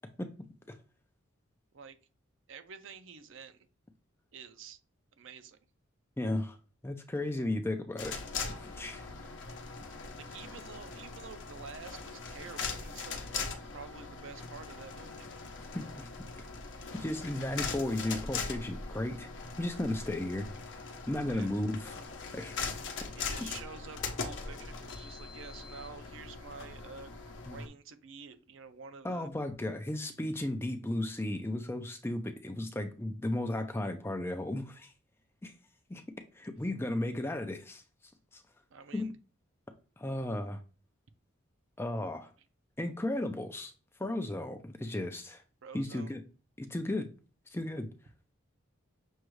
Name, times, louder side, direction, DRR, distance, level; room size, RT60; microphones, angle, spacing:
voice 1, 2.5-3.7 4.3-4.8 5.2-5.6 10.2-15.3 21.3-21.5 23.2-29.3 38.7-39.2 42.1-42.2 45.6-46.2, right 5 dB, 70° right, 0.5 m, -49 dB
voice 2, 6.2-6.6 6.8-8.1 8.6-9.1 15.7-16.1 16.9-19.3 19.6-20.5 21.1-22.0 22.3-22.7 23.4-23.5 27.5-27.6 29.0-34.9 35.4-35.5 35.9-36.0 36.3-37.8 38.3-38.4 38.9-39.1 40.0-40.6 41.8-42.3 42.8-43.7 44.0-45.4 45.7-46.2 46.6-47.1 47.5-47.9, left 1 dB, 10° left, 0.4 m, -34 dB
sound 1, 8.0-27.7, left 4 dB, 60° left, 0.7 m, -41 dB
6.3 x 2.3 x 3.1 m
head